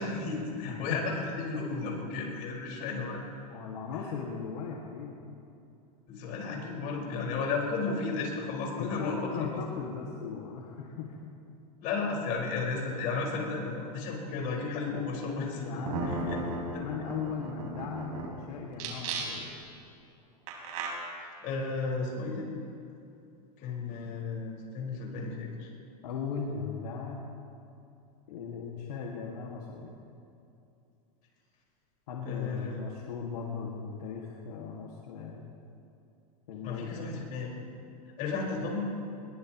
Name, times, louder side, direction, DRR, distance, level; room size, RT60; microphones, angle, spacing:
voice 1, 0.0-3.2 6.1-9.6 11.8-15.6 16.0-16.4 16.7-16.8 21.2-22.5 23.6-25.7 32.2-32.8 36.6-37.5 38.2-38.9, left 4 dB, 45° left, -2 dB, 4.9 m, -33 dB
voice 2, 0.6-1.0 1.4-1.5 3.5-5.2 8.7-11.2 15.6-19.5 26.0-27.2 28.3-29.9 32.1-35.4 36.5-37.2, left 5 dB, 80° left, -2 dB, 2.0 m, -38 dB
sound 1, 15.5-15.6 15.9-18.3 18.7-19.6 20.5-20.9, right 4 dB, 65° right, 4.2 m, -35 dB
21.5 x 21.0 x 3.0 m, 2.6 s
supercardioid pair, 140°, 20 cm